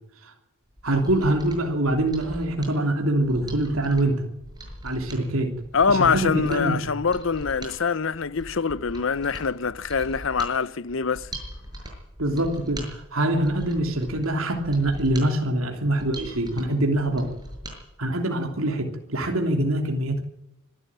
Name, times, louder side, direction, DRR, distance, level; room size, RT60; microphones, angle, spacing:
Mechanisms, 0.7-17.8 18.1-18.2, right 1 dB, 20° right, 6.4 m, -41 dB
voice 1, 0.8-4.3 4.8-5.5 5.9-6.9 12.2-17.3 18.0-20.2, right 1 dB, 80° right, 3.2 m, -24 dB
voice 2, 5.7-11.3, left 5 dB, 65° left, 0.7 m, -24 dB
24.5 x 12.5 x 8.9 m
head